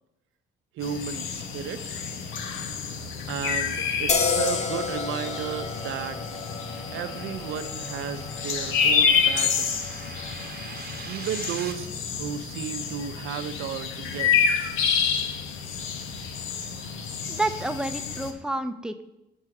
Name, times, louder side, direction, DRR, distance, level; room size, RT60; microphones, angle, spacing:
voice 1, 0.7-2.0 3.3-6.2 6.9-10.0 11.1-14.5, right 9 dB, 80° right, 10 dB, 0.6 m, -34 dB
sound 1, 0.8-18.3, left 6 dB, 90° left, 0.8 m, -28 dB
sound 2, 4.1-11.4, left 5 dB, 35° left, 0.8 m, -32 dB
sound 3, 5.6-11.7, right 6 dB, 50° right, 1.0 m, -45 dB
voice 2, 17.3-19.0, right 2 dB, 5° right, 8 dB, 0.6 m, -29 dB
6.4 x 5.5 x 4.8 m, 0.90 s
cardioid pair, 90°, 20 cm